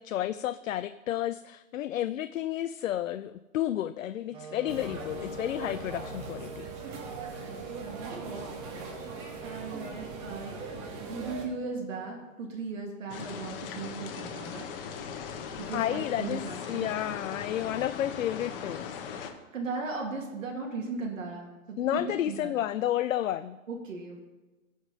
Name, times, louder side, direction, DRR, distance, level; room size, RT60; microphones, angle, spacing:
voice 1, 0.0-6.7 15.7-19.0 21.8-23.6, left 12 dB, 70° left, 13 dB, 0.5 m, -31 dB
sound 1, 4.3-12.3, right 4 dB, 15° right, 0.8 m, -45 dB
walla market croatian XY, 4.7-11.5, right 3 dB, 35° right, 2.1 m, -41 dB
voice 2, 7.5-9.1 9.4-10.6 10.9-14.7 15.6-16.9 19.5-22.5 23.7-24.2, right 4 dB, 70° right, 1 dB, 2.3 m, -38 dB
sound 2, 13.1-19.3, left 7 dB, 40° left, 1.2 m, -39 dB
14.5 x 5.2 x 5.2 m, 1.2 s
hypercardioid pair, 135°, 41 cm